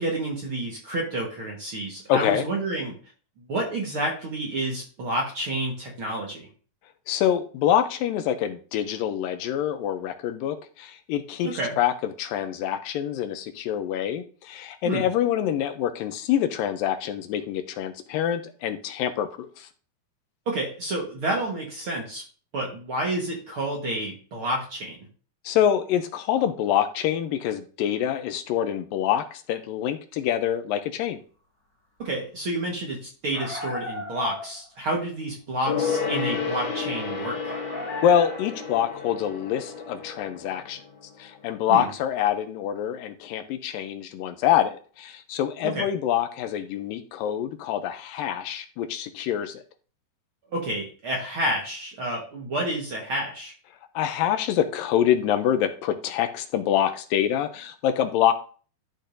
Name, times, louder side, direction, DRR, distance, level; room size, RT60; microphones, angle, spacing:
voice 1, 0.0-2.9 3.5-6.5 11.4-11.8 14.8-15.1 20.4-22.2 22.5-24.9 32.0-37.5 41.7-41.9 45.6-45.9 50.5-53.5, right 1 dB, 50° right, -2 dB, 1.7 m, -29 dB
voice 2, 2.1-2.4 7.1-11.5 11.8-11.9 12.2-19.7 25.5-31.2 38.0-40.8 41.2-49.6 54.0-58.3, left 10 dB, 80° left, 9 dB, 2.3 m, -25 dB
sound 1, 33.3-34.7 37.4-38.6, left 2 dB, 10° left, 2.1 m, -36 dB
Gong, 35.7-41.6 41.8-41.9, left 5 dB, 60° left, 3.3 m, -31 dB
12.0 x 6.3 x 2.7 m, 0.40 s
omnidirectional pair, 4.2 m